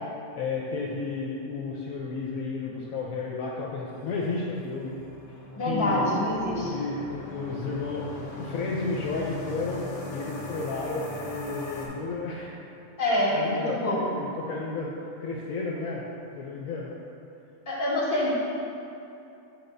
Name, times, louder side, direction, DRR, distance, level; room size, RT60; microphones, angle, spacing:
voice 1, 0.4-5.0 5.6-6.0 6.6-12.5 13.1-14.9 15.2-16.0 16.4-16.9, left 3 dB, 75° left, -3 dB, 1.1 m, -32 dB
sound 1, 4.0-11.9, left 2 dB, 55° left, 1.4 m, -39 dB
voice 2, 5.5-6.7 13.0-14.0 17.7-18.4, left 1 dB, 40° left, -6 dB, 1.8 m, -26 dB
8.4 x 6.7 x 2.6 m, 2.8 s
omnidirectional pair, 1.5 m